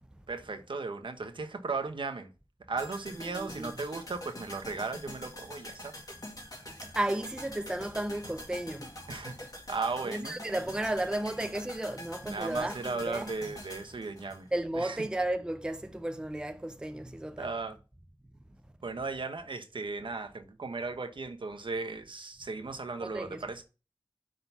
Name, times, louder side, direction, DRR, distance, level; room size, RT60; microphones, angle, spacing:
voice 1, 0.3-2.3 2.7-5.9 9.1-9.3 9.7-10.4 12.2-14.5 14.7-15.0 17.4-17.8 18.8-23.6, right 4 dB, 65° right, 1.0 m, -36 dB
sound 1, 2.8-14.9 15.2-15.3, left 1 dB, 45° left, 2.1 m, -45 dB
voice 2, 3.3-3.7 6.9-8.9 10.1-13.3 14.5-17.5 23.0-23.4, right 1 dB, 10° right, 0.5 m, -33 dB
5.6 x 3.8 x 5.9 m
wide cardioid pair, 80°, 9 cm